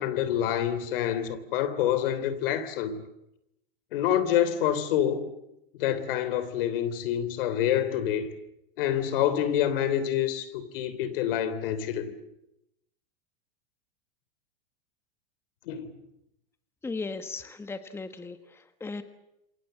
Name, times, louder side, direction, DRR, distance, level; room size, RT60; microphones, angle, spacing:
voice 1, 0.0-3.0 3.9-5.3 5.8-8.3 8.8-12.1 15.7-15.9, left 10 dB, 70° left, 3.3 m, -27 dB
voice 2, 16.8-18.4 18.8-19.0, left 3 dB, 10° left, 1.2 m, -36 dB
28.0 x 24.0 x 7.8 m
supercardioid pair, 140°, 29 cm